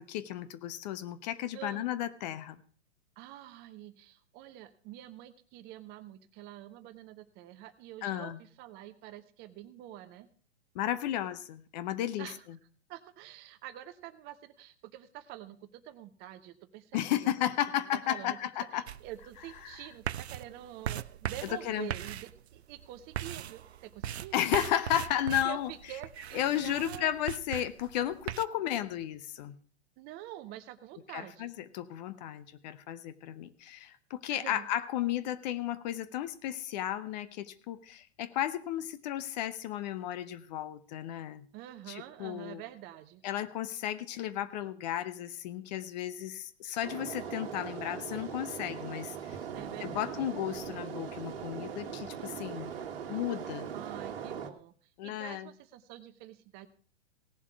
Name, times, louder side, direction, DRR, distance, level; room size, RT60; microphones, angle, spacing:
voice 1, 0.0-2.6 8.0-8.4 10.7-12.6 16.9-18.8 19.6-19.7 21.6-21.9 24.3-25.7 26.3-29.6 31.1-41.4 41.9-42.6 43.2-49.4 49.8-52.7 53.1-53.7 55.0-55.5, left 12 dB, 40° left, 13 dB, 0.8 m, -34 dB
voice 2, 1.5-1.9 3.2-10.3 12.2-12.5 12.9-17.5 17.9-18.4 18.7-24.4 25.4-27.1 30.0-31.5 34.3-34.7 41.5-43.2 49.5-50.3 53.7-54.7 55.0-56.7, right 13 dB, 30° right, 11 dB, 0.9 m, -47 dB
sound 1, 18.9-28.5, right 10 dB, 75° right, 0.5 m, -40 dB
sound 2, 46.8-54.5, right 8 dB, 60° right, 1.5 m, -40 dB
17.5 x 7.4 x 4.7 m, 0.44 s
figure-of-eight pair, 110°, 33 cm